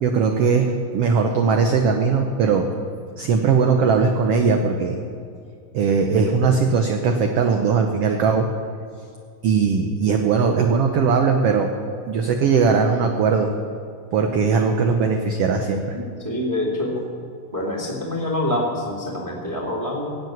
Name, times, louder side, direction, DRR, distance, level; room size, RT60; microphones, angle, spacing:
voice 1, 0.0-2.7 3.2-5.0 5.7-8.5 9.4-11.7 12.1-13.5 14.1-16.0, right 5 dB, 75° right, 4 dB, 1.4 m, -19 dB
voice 2, 15.9-17.0 17.5-20.2, left 1 dB, 15° right, -4 dB, 2.4 m, -26 dB
17.5 x 7.5 x 9.3 m, 2.4 s
omnidirectional pair, 3.9 m